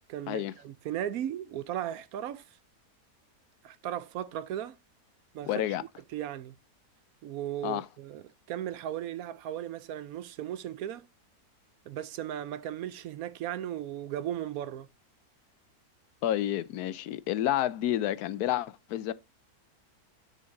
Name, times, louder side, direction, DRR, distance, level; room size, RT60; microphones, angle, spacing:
voice 1, 0.1-2.6 3.6-4.8 5.3-6.6 7.2-11.1 11.9-14.9, right 11 dB, 70° right, 1.0 m, -36 dB
voice 2, 5.5-5.8 7.6-7.8 16.2-19.1, left 12 dB, 80° left, 1.1 m, -29 dB
9.9 x 5.8 x 2.6 m
omnidirectional pair, 1.6 m